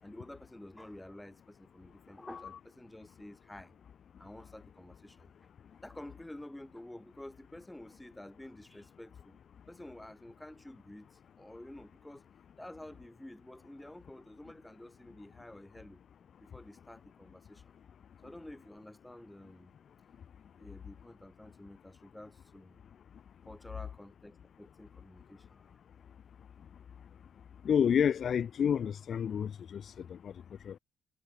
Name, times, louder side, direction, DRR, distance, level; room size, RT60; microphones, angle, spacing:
voice 1, 0.0-3.7 4.2-5.3 5.8-9.4 9.7-12.3 12.6-16.0 16.4-17.6 18.2-19.7 20.6-22.8 23.4-25.8, left 1 dB, 10° left, 6.4 m, -50 dB
voice 2, 27.6-30.8, left 8 dB, 55° left, 0.3 m, -30 dB
cardioid pair, 90°, 0 cm